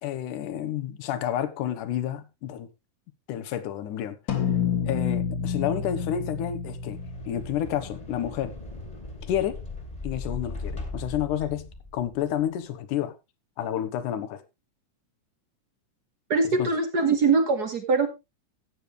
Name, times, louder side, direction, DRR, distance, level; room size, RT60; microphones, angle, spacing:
voice 1, 0.0-2.7 3.3-4.2 4.9-7.0 7.3-8.5 9.3-9.6 10.0-13.1 13.6-14.4 16.6-16.7, left 10 dB, 75° left, 2.6 m, -30 dB
sound 1, 4.3-8.9, left 7 dB, 45° left, 1.8 m, -30 dB
sound 2, 6.7-12.3, left 3 dB, 15° left, 2.0 m, -39 dB
voice 2, 16.3-18.1, right 4 dB, 60° right, 1.0 m, -22 dB
14.0 x 8.7 x 3.2 m
omnidirectional pair, 3.8 m